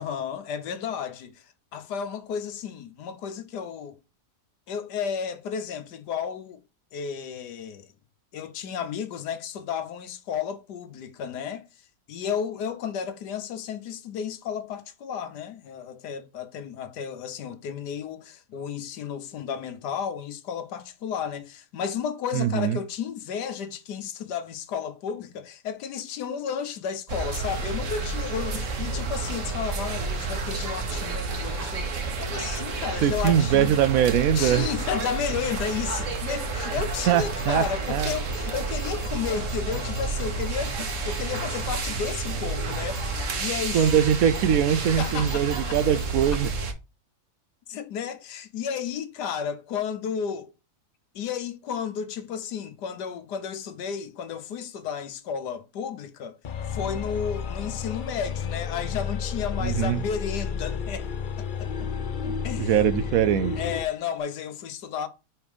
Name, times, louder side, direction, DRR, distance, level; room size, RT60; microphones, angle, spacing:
voice 1, 0.0-4.0 4.7-6.6 6.9-7.9 8.3-11.7 12.1-33.8 34.3-43.9 45.0-45.4 47.7-50.5 51.1-56.4 56.7-61.1 61.4-61.7 62.2-62.7 63.6-65.1, left 7 dB, 80° left, 1.4 m, -33 dB
voice 2, 22.3-22.8 33.0-34.7 37.1-38.2 43.7-46.5 59.6-60.0 62.6-63.6, right 9 dB, 70° right, 0.9 m, -22 dB
sound 1, 27.1-46.7, right 3 dB, 55° right, 1.3 m, -30 dB
Train, 36.8-46.6, left 1 dB, 15° right, 0.8 m, -49 dB
sound 2, 56.4-63.9, left 6 dB, 65° left, 0.4 m, -31 dB
5.3 x 4.4 x 4.9 m
omnidirectional pair, 1.7 m